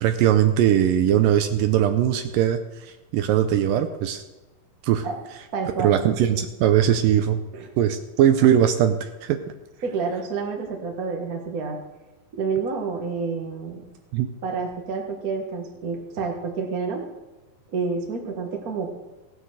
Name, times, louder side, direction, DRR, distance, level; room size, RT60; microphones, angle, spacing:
voice 1, 0.0-4.2 4.8-5.1 5.8-7.4 7.8-9.4 14.1-14.3, right 10 dB, 80° right, 8 dB, 2.1 m, -20 dB
voice 2, 5.5-5.9 7.5-7.7 9.8-11.8 12.3-13.8 14.4-17.0 17.7-18.9, right 4 dB, 50° right, 2 dB, 1.0 m, -29 dB
16.5 x 8.0 x 6.4 m, 1.1 s
omnidirectional pair, 4.4 m